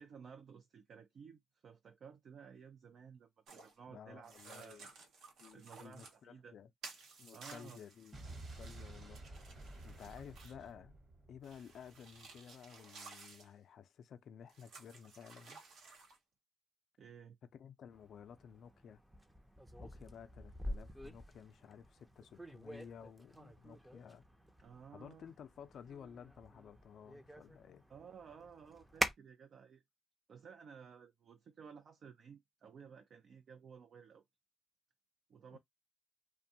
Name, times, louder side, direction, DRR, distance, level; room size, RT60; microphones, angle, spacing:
voice 1, 0.0-4.8 5.5-6.6 7.3-7.8 17.0-17.4 24.6-25.3 27.9-29.8 30.3-34.2 35.3-35.6, right 6 dB, 55° right, 0.4 m, -55 dB
sound 1, 3.5-3.7 4.2-6.2 6.8-10.7 11.4-13.5 14.5-16.2, right 4 dB, 75° right, 0.9 m, -56 dB
voice 2, 3.9-4.9 5.4-6.7 7.2-9.2 9.8-11.0 11.3-15.7 17.5-19.0 19.8-24.2 24.9-27.8 35.5-35.6, left 7 dB, 65° left, 0.4 m, -54 dB
Explosion, 8.1-12.2, right 2 dB, 35° right, 1.1 m, -52 dB
sound 2, 17.9-29.1, equal, 10° right, 0.5 m, -46 dB
2.5 x 2.2 x 2.7 m
cardioid pair, 90°, 0 cm